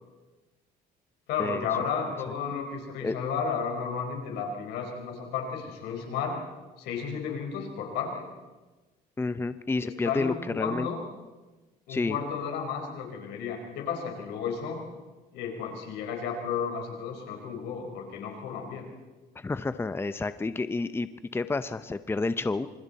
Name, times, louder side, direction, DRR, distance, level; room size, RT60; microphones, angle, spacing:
voice 1, 1.3-6.4 6.8-8.2 9.8-11.0 11.9-14.8 15.3-18.9, left 6 dB, 90° left, 2 dB, 4.5 m, -33 dB
voice 2, 9.2-10.9 11.9-12.2 19.4-22.7, left 3 dB, 15° left, 12 dB, 0.7 m, -30 dB
26.0 x 26.0 x 4.2 m, 1.2 s
cardioid pair, 110°, 17 cm